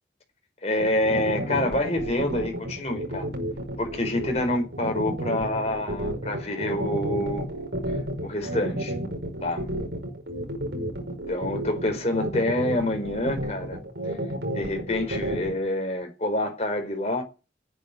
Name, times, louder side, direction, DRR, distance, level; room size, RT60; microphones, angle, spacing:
voice 1, 0.6-3.3 3.8-7.5 8.2-8.9 9.4-9.7 11.3-13.8 14.5-17.2, left 1 dB, 35° left, 4.6 m, -27 dB
sound 1, 0.8-15.5, right 1 dB, 75° right, 5.4 m, -31 dB
12.5 x 10.5 x 10.0 m
head